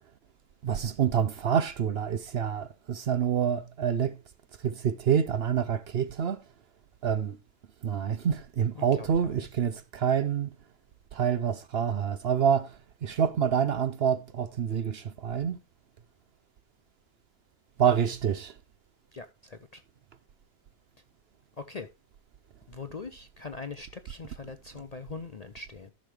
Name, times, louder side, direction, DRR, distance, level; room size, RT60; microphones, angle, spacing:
voice 1, 0.6-4.1 4.6-6.4 7.0-7.4 7.8-10.5 11.1-12.7 13.0-15.6 17.8-18.5, right 8 dB, 60° right, 0.8 m, -27 dB
voice 2, 8.7-9.5 19.1-19.8 21.6-21.9 22.7-25.9, left 4 dB, 45° left, 0.5 m, -42 dB
14.0 x 6.4 x 3.2 m
omnidirectional pair, 1.4 m